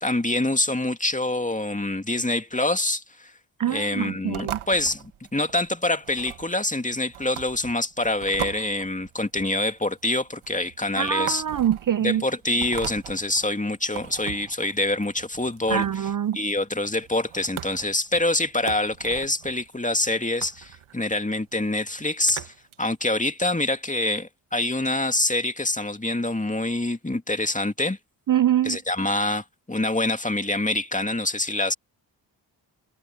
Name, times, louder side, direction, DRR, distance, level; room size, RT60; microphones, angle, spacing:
voice 1, 0.0-3.3 3.7-11.4 12.0-16.1 16.3-28.0 28.6-31.7, left 2 dB, 15° left, 2.3 m, -26 dB
voice 2, 3.6-4.6 11.0-12.2 15.7-16.4 28.3-28.8, right 10 dB, 45° right, 0.5 m, -24 dB
sound 1, 4.3-22.7, right 10 dB, 80° right, 1.5 m, -40 dB
supercardioid pair, 40°, 48 cm